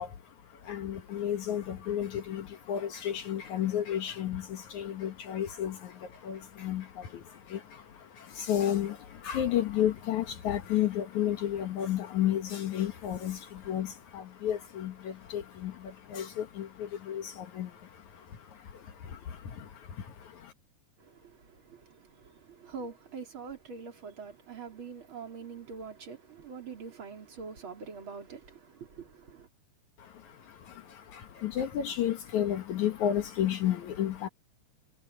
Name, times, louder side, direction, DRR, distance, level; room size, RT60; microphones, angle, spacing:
voice 1, 0.0-20.5 30.0-34.3, left 10 dB, 60° left, 2.1 m, -33 dB
voice 2, 21.1-21.4 21.6-29.5, right 5 dB, 30° right, 3.5 m, -44 dB
omnidirectional pair, 4.9 m